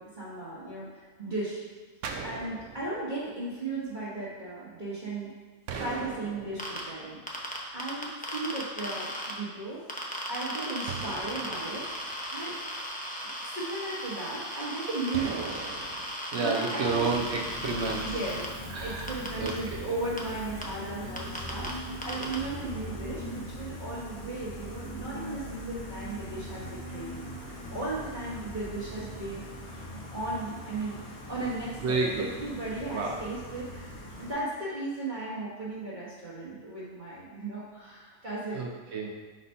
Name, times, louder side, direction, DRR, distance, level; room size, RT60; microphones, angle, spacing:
voice 1, 0.0-1.6 2.2-5.3 5.7-7.2 7.7-9.8 10.3-11.9 12.3-12.6 13.5-15.6 16.3-17.1 18.0-18.4 18.8-27.3 27.7-29.4 30.1-38.7, right 2 dB, 35° right, -9 dB, 1.2 m, -36 dB
sound 1, 2.0-3.2 5.7-7.0 10.9-12.3 15.1-16.1, right 5 dB, 80° right, 1.1 m, -39 dB
sound 2, 6.6-6.8 7.3-9.3 9.9-18.5 19.1-19.5 20.2-20.3 20.6-20.7 21.2-21.7 22.0-22.3, equal, 10° left, 0.3 m, -36 dB
voice 2, 16.3-18.1 18.7-19.8 21.0-21.3 27.5-27.6 31.8-32.3 32.9-33.2 38.5-39.3, right 4 dB, 60° right, 0 dB, 0.9 m, -31 dB
Gull seagull, 16.8-34.3, equal, 85° left, 1.5 m, -41 dB
4.3 x 4.1 x 5.4 m, 1.5 s
omnidirectional pair, 1.5 m